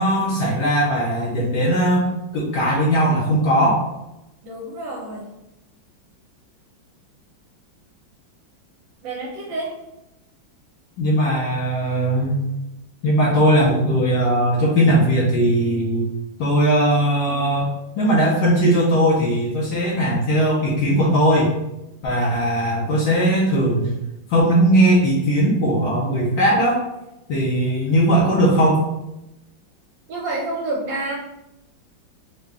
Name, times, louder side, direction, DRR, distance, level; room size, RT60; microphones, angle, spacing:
voice 1, 0.0-2.1 2.3-3.8 11.0-12.4 13.0-16.1 16.4-17.7 18.0-21.5 22.0-23.9 24.3-26.8 27.3-28.8, right 1 dB, 75° left, -5 dB, 1.4 m, -18 dB
voice 2, 4.4-5.3 9.0-9.7 30.1-31.2, right 2 dB, 70° right, -2 dB, 1.3 m, -28 dB
3.7 x 2.2 x 3.3 m, 0.92 s
omnidirectional pair, 2.2 m